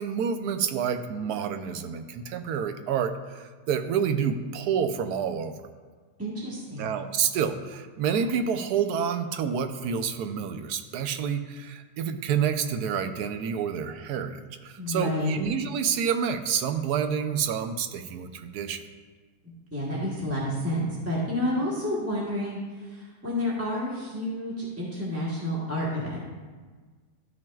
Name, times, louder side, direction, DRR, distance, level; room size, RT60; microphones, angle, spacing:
voice 1, 0.0-5.5 6.8-18.8, right 7 dB, 80° right, 8 dB, 1.2 m, -28 dB
voice 2, 6.2-6.9 14.8-15.4 19.7-26.2, left 1 dB, 10° right, -7 dB, 1.1 m, -30 dB
13.0 x 5.9 x 2.3 m, 1.4 s
omnidirectional pair, 1.7 m